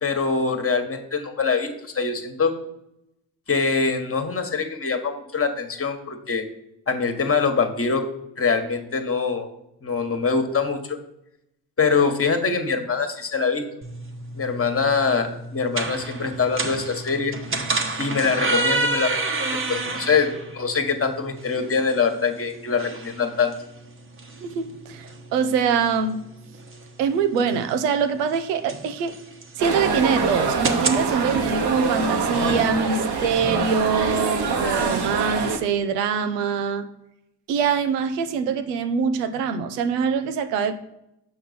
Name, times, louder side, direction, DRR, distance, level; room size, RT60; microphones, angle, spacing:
voice 1, 0.0-2.6 3.5-6.4 6.9-8.1 8.4-9.5 9.8-11.0 11.8-13.6 14.3-17.4 18.0-19.2 19.7-23.5, left 5 dB, 30° left, 1.5 m, -23 dB
sound 1, 13.8-31.0, right 3 dB, 25° right, 1.1 m, -31 dB
voice 2, 24.4-26.2 27.0-29.1 29.6-36.9 37.5-40.7, right 6 dB, 85° right, 0.7 m, -24 dB
sound 2, 29.6-35.6, right 4 dB, 55° right, 1.2 m, -24 dB
7.5 x 6.0 x 4.1 m
hypercardioid pair, 45°, 47 cm